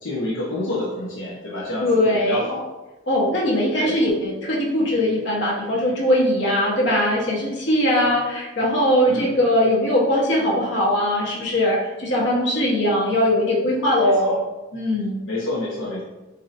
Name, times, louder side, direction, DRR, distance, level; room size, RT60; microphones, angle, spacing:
voice 1, 0.0-2.6 3.8-4.0 9.1-9.3 14.0-14.4 15.3-16.0, left 2 dB, 85° left, -5 dB, 0.9 m, -28 dB
voice 2, 1.8-2.5 3.1-14.4 14.7-15.2, left 1 dB, 65° left, -4 dB, 1.3 m, -20 dB
7.3 x 2.8 x 2.6 m, 1.1 s
head